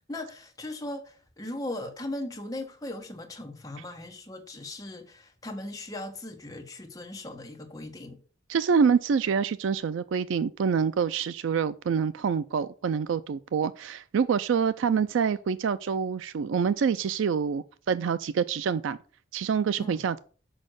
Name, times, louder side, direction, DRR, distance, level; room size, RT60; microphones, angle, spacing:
voice 1, 0.1-8.2 19.8-20.0, left 1 dB, 15° left, 1.1 m, -38 dB
voice 2, 8.5-19.0 19.3-20.2, right 6 dB, 75° right, 0.3 m, -26 dB
6.4 x 5.3 x 6.3 m
head